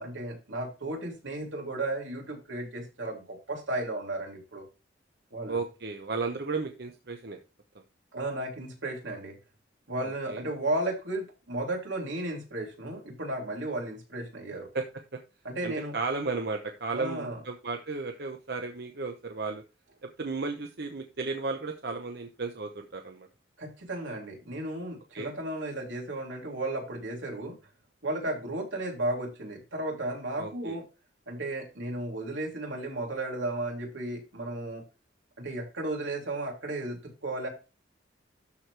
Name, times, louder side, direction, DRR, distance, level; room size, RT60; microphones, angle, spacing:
voice 1, 0.0-4.6 5.3-5.6 8.1-9.4 9.9-14.7 15.4-15.9 16.9-17.4 23.6-27.6 28.0-30.8 31.3-34.8 35.4-37.5, right 1 dB, 90° right, 0 dB, 3.2 m, -34 dB
voice 2, 5.5-7.4 10.0-10.4 14.7-14.8 15.6-19.6 20.0-23.3 25.1-25.3 30.4-30.8, right 3 dB, 60° right, 4 dB, 0.9 m, -34 dB
12.5 x 4.6 x 3.3 m, 0.29 s
head